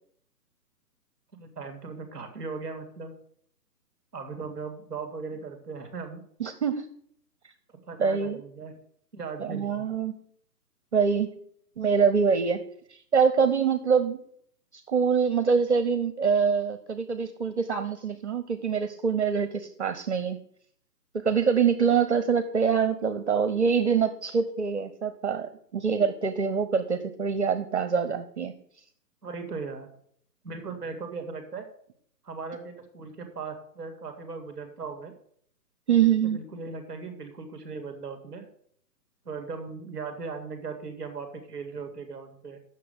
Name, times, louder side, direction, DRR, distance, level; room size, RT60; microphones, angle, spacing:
voice 1, 1.3-3.2 4.1-6.2 7.7-8.7 9.1-9.9 29.2-29.9 30.4-31.7 32.2-35.1 35.9-38.5 39.2-42.6, right 4 dB, ahead, 6 dB, 1.2 m, -38 dB
voice 2, 6.4-6.8 8.0-8.4 9.4-10.1 10.9-11.3 11.8-12.6 13.1-14.2 14.9-20.4 21.2-28.5 35.9-36.4, right 6 dB, 45° right, 10 dB, 0.7 m, -24 dB
8.4 x 6.6 x 6.8 m, 0.64 s
hypercardioid pair, 170°, 49 cm